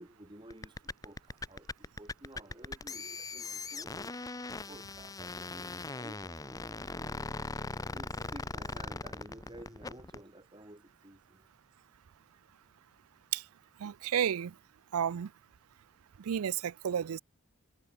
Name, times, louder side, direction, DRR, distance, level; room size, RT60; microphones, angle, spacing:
voice 1, 0.0-7.4 7.9-11.5, right 1 dB, 20° right, 3.8 m, -53 dB
sound 1, 0.5-10.2, left 3 dB, 15° left, 0.6 m, -40 dB
voice 2, 13.8-14.5 14.9-15.3 16.2-17.2, right 9 dB, 85° right, 0.4 m, -32 dB
head